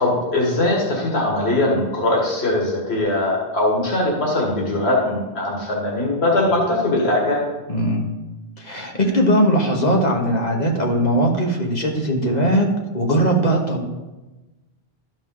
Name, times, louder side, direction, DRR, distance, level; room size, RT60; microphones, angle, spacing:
voice 1, 0.0-7.4, left 1 dB, 85° left, -2 dB, 1.9 m, -21 dB
voice 2, 7.7-8.1 8.6-12.7 12.9-13.8, equal, 40° left, 1 dB, 1.4 m, -19 dB
12.5 x 5.3 x 3.8 m, 1.1 s
omnidirectional pair, 1.1 m